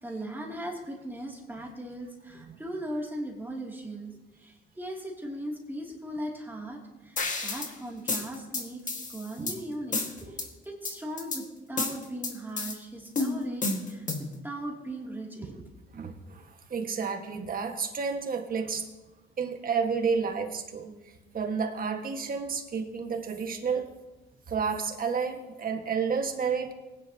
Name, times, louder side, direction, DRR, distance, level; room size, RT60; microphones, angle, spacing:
voice 1, 0.0-10.4 10.6-14.1 14.4-15.7, right 1 dB, 10° right, -2 dB, 2.8 m, -38 dB
sound 1, 7.2-7.7 8.1-9.6 9.9-10.5 10.8-11.4 11.8-12.7 13.2-14.4, left 3 dB, 40° left, 1.8 m, -31 dB
voice 2, 15.9-18.9 19.4-20.9 21.3-23.9 24.5-26.7, right 5 dB, 45° right, 4 dB, 1.7 m, -30 dB
19.5 x 10.0 x 2.9 m, 1.1 s
cardioid pair, 90°, 20 cm